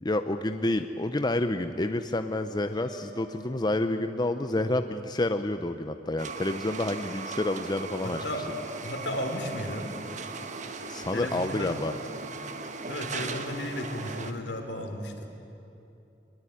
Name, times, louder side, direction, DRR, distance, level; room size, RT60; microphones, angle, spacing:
voice 1, 0.0-8.2 10.9-11.9, left 2 dB, 25° left, 8 dB, 0.7 m, -29 dB
Piano, 2.7-4.6, right 1 dB, 80° right, 5.5 m, -50 dB
sound 1, 6.2-14.3, right 4 dB, 45° right, 1.5 m, -38 dB
voice 2, 8.0-8.5 8.8-10.0 11.1-11.7 12.9-15.3, left 1 dB, 75° left, 5 dB, 3.4 m, -34 dB
22.5 x 20.5 x 10.0 m, 2.9 s
head